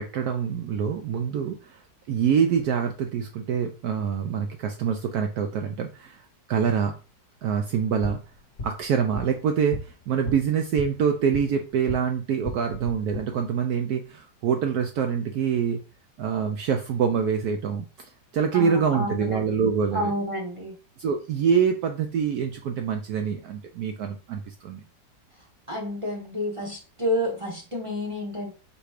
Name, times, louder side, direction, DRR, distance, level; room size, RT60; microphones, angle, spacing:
voice 1, 0.0-1.8 2.1-6.2 6.5-6.9 7.4-8.2 8.6-15.8 16.2-20.1 21.0-24.8, right 7 dB, 70° right, 5 dB, 0.9 m, -25 dB
sound 1, 7.8-12.0 12.4-13.2, left 2 dB, 45° left, 1.4 m, -38 dB
voice 2, 18.5-19.4 19.9-20.7 25.7-28.5, left 1 dB, 25° right, 0 dB, 0.8 m, -29 dB
4.9 x 2.3 x 4.8 m, 0.34 s
omnidirectional pair, 1.9 m